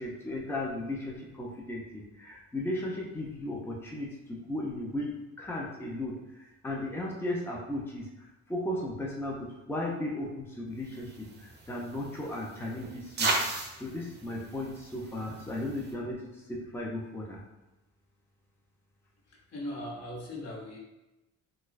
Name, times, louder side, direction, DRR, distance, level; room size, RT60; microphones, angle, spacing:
voice 1, 0.0-6.1 6.6-8.1 8.5-13.3 13.7-16.2 16.5-17.4, left 1 dB, 10° left, -3 dB, 0.6 m, -35 dB
sound 1, 10.8-15.9, right 3 dB, 35° right, 0.7 m, -36 dB
voice 2, 19.3-20.8, left 1 dB, 55° left, -1 dB, 0.9 m, -39 dB
4.3 x 2.2 x 2.5 m, 1.0 s
cardioid pair, 90°, 30 cm